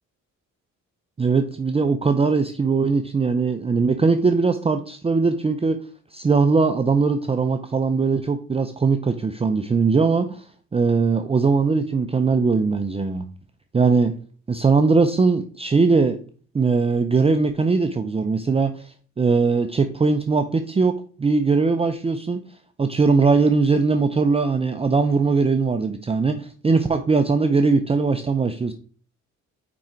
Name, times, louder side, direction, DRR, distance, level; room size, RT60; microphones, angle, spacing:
voice 1, 1.2-5.8 6.1-10.4 10.7-13.3 13.7-14.1 14.5-16.2 16.5-22.4 22.8-28.7, right 4 dB, 20° right, 7 dB, 0.5 m, -20 dB
6.1 x 5.0 x 4.4 m, 0.43 s
cardioid pair, 90°, 30 cm